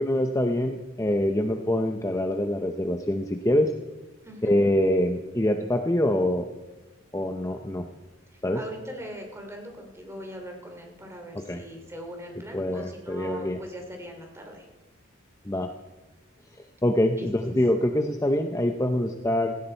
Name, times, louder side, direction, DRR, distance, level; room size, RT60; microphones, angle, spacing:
voice 1, 0.0-3.7 4.4-6.5 7.1-7.9 8.4-8.6 11.3-11.6 12.5-13.6 15.4-15.7 16.8-19.6, left 1 dB, 15° left, 5 dB, 0.7 m, -25 dB
voice 2, 4.2-4.6 8.3-14.7 17.2-17.5, equal, 15° right, 2 dB, 2.8 m, -41 dB
17.0 x 16.0 x 4.5 m, 1.1 s
head